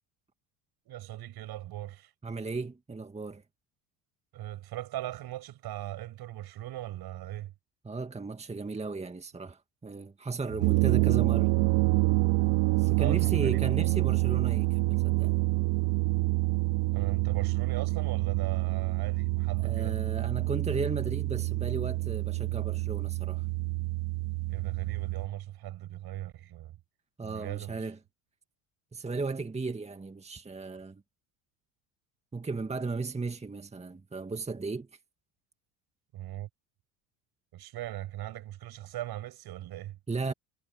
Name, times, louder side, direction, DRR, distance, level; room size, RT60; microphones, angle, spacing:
voice 1, 0.9-2.1 4.3-7.5 13.0-13.6 16.9-20.0 24.5-26.7 27.2-27.9 36.1-36.5 37.5-40.0, right 14 dB, 55° right, 6.5 m, -39 dB
voice 2, 2.2-3.4 7.8-11.5 12.8-15.3 19.6-23.5 27.2-28.0 28.9-31.0 32.3-34.9 40.1-40.3, right 4 dB, 15° right, 1.9 m, -35 dB
sound 1, 10.5-25.3, right 23 dB, 70° right, 2.6 m, -27 dB
supercardioid pair, 85°, 45 cm